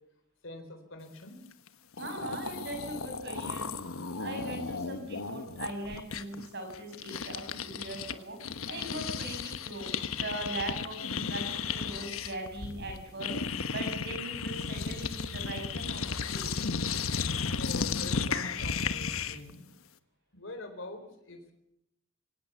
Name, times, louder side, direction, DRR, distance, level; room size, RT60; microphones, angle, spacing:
voice 1, 0.4-1.4 3.9-4.0 17.5-19.7 20.3-21.5, left 2 dB, 65° left, 6 dB, 4.2 m, -44 dB
sound 1, 1.7-1.8 1.9-8.1 8.4-19.5, left 5 dB, 80° left, 1.2 m, -34 dB
voice 2, 2.0-3.8 4.2-16.5, right 1 dB, 50° right, 4 dB, 6.9 m, -40 dB
24.0 x 18.0 x 7.1 m, 0.78 s
head